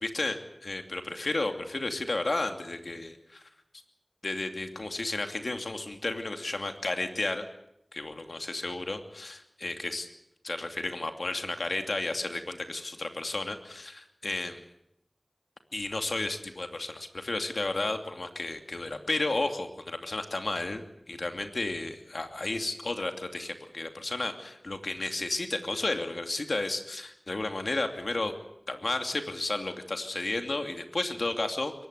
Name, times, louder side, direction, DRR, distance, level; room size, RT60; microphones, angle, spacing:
voice 1, 0.0-3.4 4.2-7.4 7.9-10.1 10.4-14.6 15.7-20.8 21.1-28.3 28.7-31.7, left 2 dB, 75° left, 6 dB, 2.7 m, -32 dB
23.0 x 19.5 x 8.2 m, 0.81 s
wide cardioid pair, 45°, 0 cm